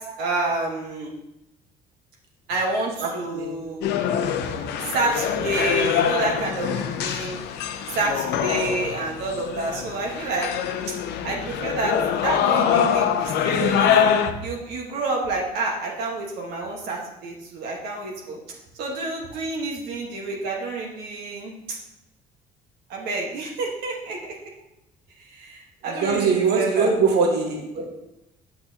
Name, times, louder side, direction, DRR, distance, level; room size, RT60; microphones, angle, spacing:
voice 1, 0.2-1.1 2.5-3.9 4.8-7.4 7.9-10.5 11.2-12.0 12.2-14.1 14.4-18.4 18.8-21.8 22.9-24.3 25.3-26.9, right 2 dB, 90° right, -1 dB, 1.3 m, -28 dB
voice 2, 3.0-3.6 25.8-27.8, right 5 dB, 70° right, 1 dB, 1.3 m, -22 dB
sound 1, 3.8-14.3, left 8 dB, 80° left, 0.6 m, -24 dB
8.5 x 5.7 x 2.8 m, 0.88 s
cardioid pair, 110°, 17 cm